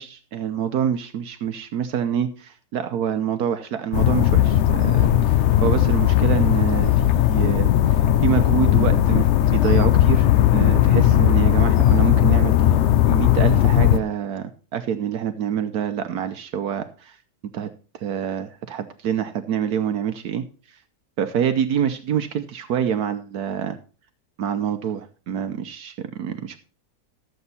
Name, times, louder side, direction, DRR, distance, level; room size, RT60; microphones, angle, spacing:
voice 1, 0.0-10.3 10.5-12.5 13.1-17.2 17.5-17.7 18.0-20.4 21.2-23.8 24.4-26.6, right 8 dB, 75° right, 8 dB, 1.3 m, -26 dB
sound 1, 3.9-14.0, left 11 dB, 65° left, 0.7 m, -17 dB
13.0 x 7.9 x 4.1 m, 0.38 s
omnidirectional pair, 1.7 m